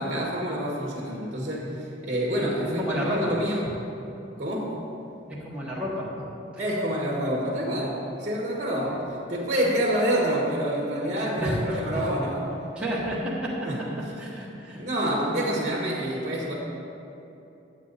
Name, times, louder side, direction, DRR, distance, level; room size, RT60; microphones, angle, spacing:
voice 1, 0.0-3.6 4.4-4.7 6.6-9.0 9.3-12.4 13.6-13.8 14.7-16.5, equal, 40° right, -2 dB, 1.5 m, -27 dB
voice 2, 2.8-3.3 5.4-6.3 8.9-9.0 11.4-11.8 12.7-13.5 14.2-14.8, equal, 5° right, -8 dB, 1.5 m, -30 dB
10.5 x 7.8 x 4.1 m, 2.9 s
head